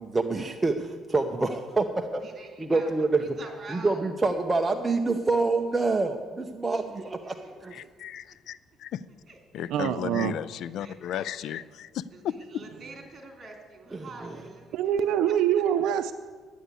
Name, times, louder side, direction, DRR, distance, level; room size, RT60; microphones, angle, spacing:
voice 1, 0.0-2.2 2.6-3.2 3.7-7.3 7.6-7.7 13.9-14.3, right 3 dB, 15° right, 4 dB, 0.8 m, -26 dB
voice 2, 2.2-2.9 3.2-4.1 7.0-7.5 8.3-8.4 9.3-9.6 10.8-11.5 12.1-15.0 15.5-15.6, right 3 dB, 40° right, 2 dB, 3.2 m, -46 dB
voice 3, 7.7-9.0 9.5-12.6, left 10 dB, 70° left, 18 dB, 0.4 m, -35 dB
voice 4, 9.7-10.3 14.7-16.1, right 9 dB, 85° right, 9 dB, 0.5 m, -24 dB
11.5 x 9.1 x 8.2 m, 1.5 s
cardioid pair, 110°, 0 cm